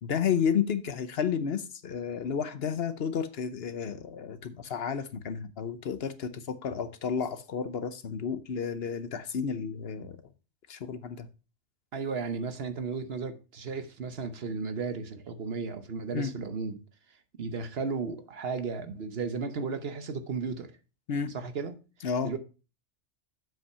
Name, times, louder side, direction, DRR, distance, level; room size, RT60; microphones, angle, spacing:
voice 1, 0.0-10.2 10.7-11.3 16.1-16.3 21.1-21.4 22.0-22.3, left 7 dB, 60° left, 0.9 m, -31 dB
voice 2, 11.9-16.7 17.4-20.8 21.3-21.8 22.2-22.4, right 4 dB, 60° right, 1.1 m, -34 dB
7.6 x 5.7 x 5.5 m
omnidirectional pair, 1.2 m